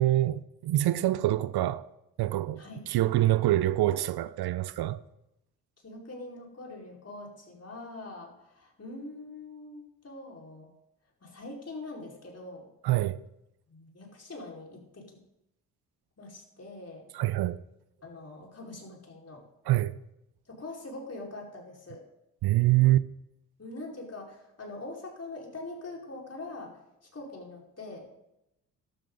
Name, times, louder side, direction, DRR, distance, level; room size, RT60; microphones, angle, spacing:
voice 1, 0.0-1.9 2.2-5.0 12.8-13.2 17.1-17.6 19.7-20.0 22.4-23.0, right 15 dB, 60° right, 0.6 m, -25 dB
voice 2, 5.8-10.7 11.2-12.7 13.7-15.2 16.2-17.0 18.0-19.4 20.5-22.0 23.6-28.1, left 2 dB, 35° left, 4.9 m, -43 dB
13.0 x 12.5 x 4.0 m
hypercardioid pair, 50°, 43 cm